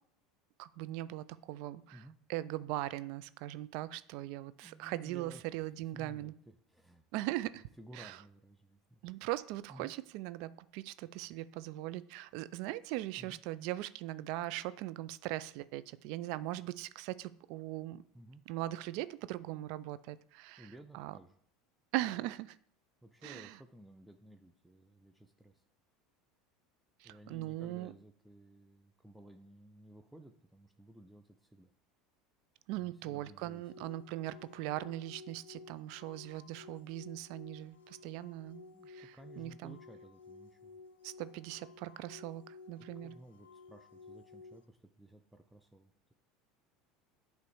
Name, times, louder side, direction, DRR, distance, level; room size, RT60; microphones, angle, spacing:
voice 1, 0.6-2.0 2.3-6.3 7.1-7.7 7.9-8.2 9.0-18.0 18.5-21.2 21.9-22.6 23.2-23.6 27.0-27.9 32.7-39.8 41.0-43.2, right 15 dB, 65° right, 16 dB, 0.3 m, -40 dB
voice 2, 4.6-5.4 5.9-7.1 7.8-9.0 9.7-9.9 13.2-13.4 18.1-18.4 20.6-21.4 23.0-25.6 27.0-31.7 32.7-33.6 38.7-40.8 43.0-46.1, right 1 dB, ahead, 6 dB, 0.5 m, -56 dB
sound 1, 33.4-44.7, left 4 dB, 80° left, 0.5 m, -54 dB
8.3 x 3.1 x 4.7 m, 0.66 s
hypercardioid pair, 80°, 0 cm